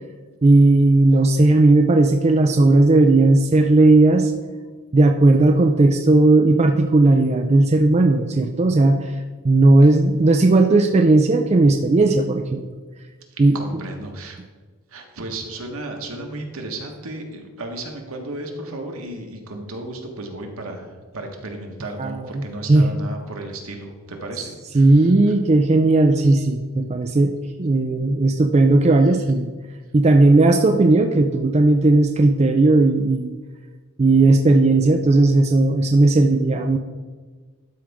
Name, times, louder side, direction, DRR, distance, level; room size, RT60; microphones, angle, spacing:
voice 1, 0.4-4.3 4.9-12.6 13.4-13.6 22.0-22.4 22.7-22.9 24.7-29.5 29.9-33.4 34.0-36.8, right 2 dB, 30° right, 5 dB, 0.4 m, -16 dB
voice 2, 13.3-14.4 14.9-25.1 26.2-26.3, right 2 dB, 70° right, 3 dB, 1.3 m, -34 dB
12.0 x 5.0 x 3.5 m, 1.4 s
head